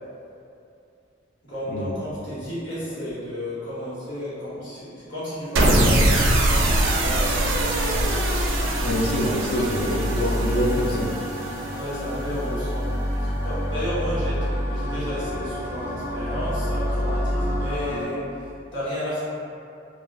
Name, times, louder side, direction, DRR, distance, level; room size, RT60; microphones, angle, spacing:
voice 1, 1.4-7.3 7.8-8.0 9.2-9.7 11.7-18.2 18.7-19.2, left 1 dB, 80° left, -10 dB, 1.1 m, -32 dB
sound 1, 5.6-11.9, right 1 dB, 85° right, 0.4 m, -23 dB
sound 2, 5.7-18.1, equal, 15° right, 0.4 m, -28 dB
voice 2, 8.8-11.1, equal, 55° left, 0 dB, 0.4 m, -25 dB
2.3 x 2.3 x 3.2 m, 2.6 s
head